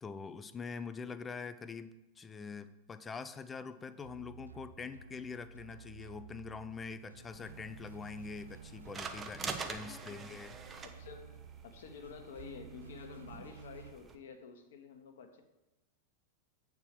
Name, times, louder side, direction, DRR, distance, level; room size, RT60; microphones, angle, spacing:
voice 1, 0.0-10.5, left 5 dB, 20° left, 13 dB, 0.4 m, -44 dB
sound 1, 4.0-13.9, right 6 dB, 80° right, 0.6 m, -53 dB
sound 2, 7.3-14.2, right 5 dB, 20° right, 0.7 m, -46 dB
voice 2, 9.8-10.4 10.8-11.4 11.6-15.4, left 6 dB, 60° left, 7 dB, 1.0 m, -50 dB
8.1 x 4.6 x 6.7 m, 1.0 s
figure-of-eight pair, 90°, 0 cm